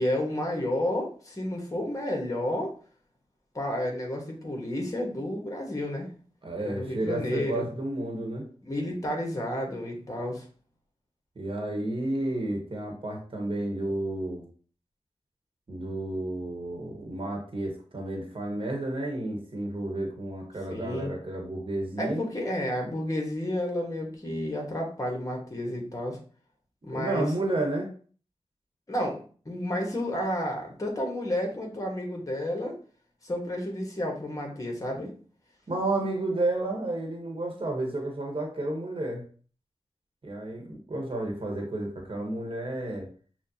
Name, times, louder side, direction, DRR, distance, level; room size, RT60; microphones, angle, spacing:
voice 1, 0.0-2.8 3.5-6.1 6.6-7.7 8.6-10.4 20.7-21.1 22.0-26.2 26.8-27.3 28.9-32.8 33.2-35.1, left 1 dB, 30° left, 1 dB, 1.3 m, -31 dB
voice 2, 6.4-8.4 11.3-14.4 15.7-22.3 26.9-27.9 35.7-39.2 40.2-43.1, right 2 dB, 50° right, 1 dB, 1.2 m, -31 dB
6.0 x 2.3 x 2.8 m, 0.42 s
cardioid pair, 50°, 11 cm